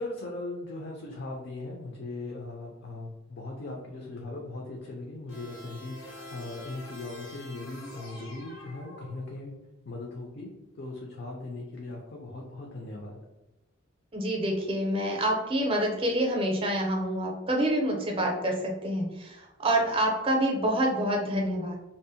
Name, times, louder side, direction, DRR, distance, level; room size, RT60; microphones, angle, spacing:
voice 1, 0.0-9.5 9.9-13.2, left 2 dB, 55° left, 0 dB, 0.4 m, -39 dB
sound 1, 5.3-9.6, left 1 dB, 90° left, 0.7 m, -46 dB
voice 2, 14.1-21.8, right 1 dB, 25° right, 0 dB, 0.5 m, -27 dB
2.5 x 2.0 x 2.6 m, 1.0 s
head